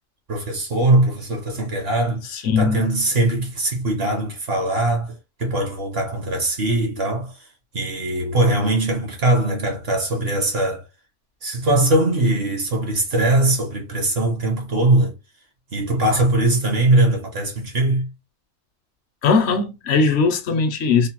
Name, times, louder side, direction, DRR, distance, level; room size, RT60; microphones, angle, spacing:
voice 1, 0.3-7.4 7.7-10.8 11.4-15.1 15.7-18.1, right 2 dB, 50° right, 1.0 m, -21 dB
voice 2, 2.3-2.9 19.2-21.1, left 4 dB, 65° left, 0.7 m, -19 dB
3.1 x 2.1 x 2.9 m
omnidirectional pair, 1.4 m